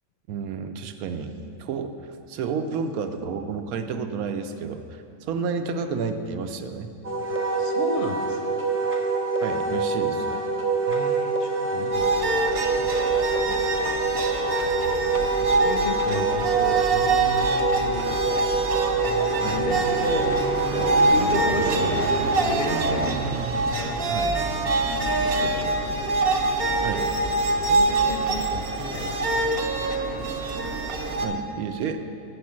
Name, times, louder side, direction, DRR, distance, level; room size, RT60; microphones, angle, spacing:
voice 1, 0.3-2.0 2.3-6.9 9.4-10.4 13.5-13.6 19.4-19.7 24.1-24.3 26.8-27.1 31.2-32.0, right 5 dB, 85° right, 7 dB, 1.1 m, -31 dB
Wind instrument woodwind instrument, 7.0-21.1, right 3 dB, 15° right, 0.4 m, -26 dB
voice 2, 7.6-8.6 10.9-12.3 12.8-12.9 14.6-14.7 15.4-18.6 19.1-20.3 20.7-24.7 25.1-26.1 27.6-29.5, left 3 dB, 55° left, 4 dB, 0.6 m, -34 dB
sound 1, 11.9-31.3, right 2 dB, 55° right, 0.7 m, -24 dB
8.0 x 5.2 x 7.4 m, 2.7 s
omnidirectional pair, 1.5 m